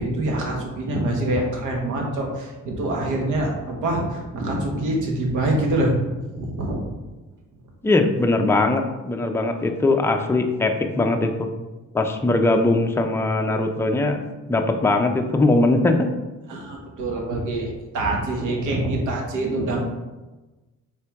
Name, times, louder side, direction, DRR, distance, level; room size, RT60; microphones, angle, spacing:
voice 1, 0.0-6.9 16.5-19.8, right 1 dB, 80° right, 0 dB, 1.2 m, -25 dB
voice 2, 7.8-11.5 11.9-14.2 14.5-16.1, left 2 dB, 10° left, 4 dB, 0.5 m, -20 dB
4.3 x 3.5 x 3.5 m, 1.1 s
cardioid pair, 90°, 30 cm